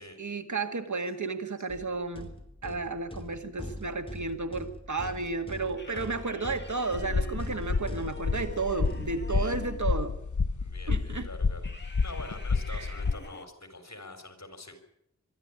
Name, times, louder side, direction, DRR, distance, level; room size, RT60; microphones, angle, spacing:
voice 1, 0.2-2.3 2.6-10.1 10.9-11.3 12.7-12.9, right 3 dB, 80° right, 7 dB, 2.0 m, -33 dB
sound 1, 1.7-9.7, left 1 dB, 20° left, 3.0 m, -43 dB
sound 2, 5.8-9.9 11.6-13.5, left 3 dB, 35° left, 2.2 m, -48 dB
sound 3, 6.9-13.1, left 4 dB, 85° left, 1.2 m, -30 dB
voice 2, 9.2-9.6 10.6-14.8, left 2 dB, 65° left, 8 dB, 4.3 m, -45 dB
23.5 x 12.0 x 9.8 m, 0.77 s
wide cardioid pair, 60°, 29 cm